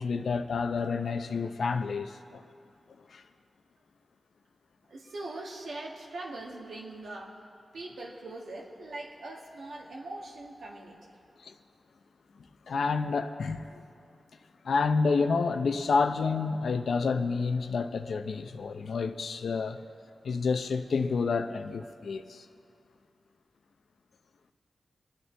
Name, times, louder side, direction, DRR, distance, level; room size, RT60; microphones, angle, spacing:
voice 1, 0.0-2.4 3.1-3.2 11.4-11.5 12.7-13.8 14.6-19.8 20.2-22.4, left 4 dB, 80° left, 8 dB, 0.6 m, -29 dB
voice 2, 4.9-7.3 7.7-11.1, right 2 dB, 80° right, -2 dB, 1.9 m, -41 dB
25.0 x 9.7 x 3.4 m, 2.4 s
cardioid pair, 65°, 0 cm